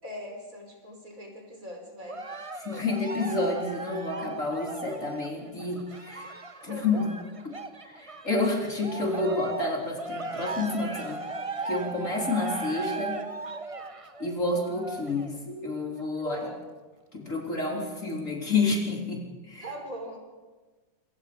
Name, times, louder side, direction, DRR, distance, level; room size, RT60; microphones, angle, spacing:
voice 1, 0.0-2.2 6.7-7.0 16.2-16.6 19.6-20.2, equal, 45° right, 2 dB, 5.2 m, -40 dB
Cheering, 2.1-8.4 8.8-15.4 16.0-16.1, right 3 dB, 20° right, 1.0 m, -37 dB
voice 2, 2.6-6.3 6.6-7.1 7.4-7.6 7.8-11.3 11.6-13.2 14.2-16.4 17.1-19.7, left 3 dB, 45° left, -1 dB, 4.2 m, -29 dB
27.0 x 24.5 x 5.3 m, 1.3 s
omnidirectional pair, 2.0 m